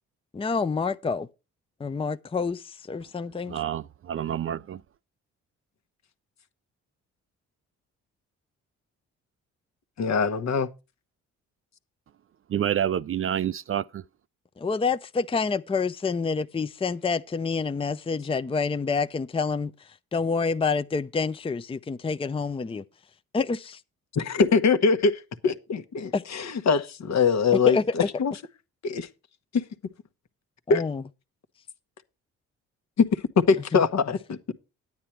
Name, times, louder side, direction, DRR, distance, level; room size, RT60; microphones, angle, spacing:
voice 1, 0.3-1.3 1.8-2.6 2.9-3.6 14.6-19.7 20.1-22.8 23.3-23.8 26.1-26.2 27.7-28.1 30.7-31.0, left 4 dB, 15° left, 0.6 m, -27 dB
voice 2, 3.5-4.8 12.5-14.0, right 10 dB, 40° right, 0.4 m, -28 dB
voice 3, 10.0-10.7 24.1-28.3 28.8-29.1 30.7-30.8 33.0-33.1 33.5-34.5, left 5 dB, 55° left, 1.2 m, -23 dB
9.5 x 9.0 x 4.5 m
supercardioid pair, 50°, 33 cm